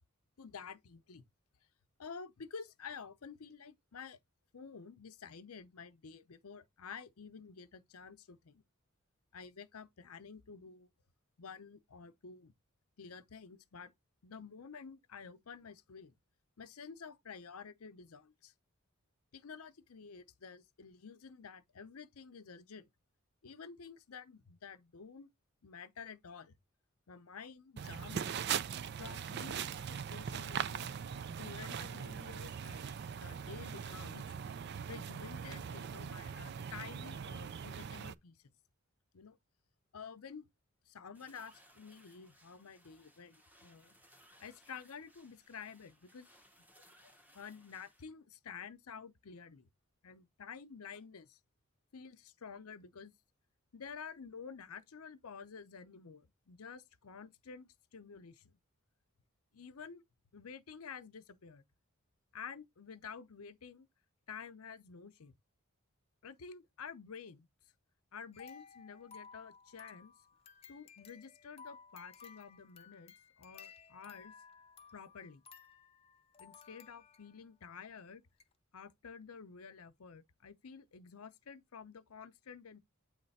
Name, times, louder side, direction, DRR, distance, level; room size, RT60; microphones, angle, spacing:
voice 1, 0.4-1.2 2.0-4.2 4.5-8.6 9.3-10.9 11.4-12.5 13.0-13.9 14.2-16.1 16.6-18.5 19.3-22.9 23.4-25.3 25.6-26.6 27.1-28.4 29.0-31.0 31.4-34.4 34.9-38.4 39.1-39.4 39.9-40.5 40.8-43.9 44.4-46.3 47.0-49.7 50.0-51.4 51.9-53.1 53.7-58.5 59.5-60.0 60.3-61.6 62.3-63.9 64.3-65.3 66.2-67.5 68.1-70.1 70.7-74.3 74.9-75.4 76.4-78.2 78.7-82.8, left 6 dB, 80° left, 0.7 m, -50 dB
sound 1, 27.8-38.1, right 7 dB, 50° right, 0.3 m, -41 dB
sound 2, 41.1-48.0, equal, 5° right, 0.8 m, -65 dB
sound 3, 68.3-77.5 78.0-78.1 78.4-78.5, left 6 dB, 25° left, 0.6 m, -57 dB
8.6 x 3.3 x 4.1 m
head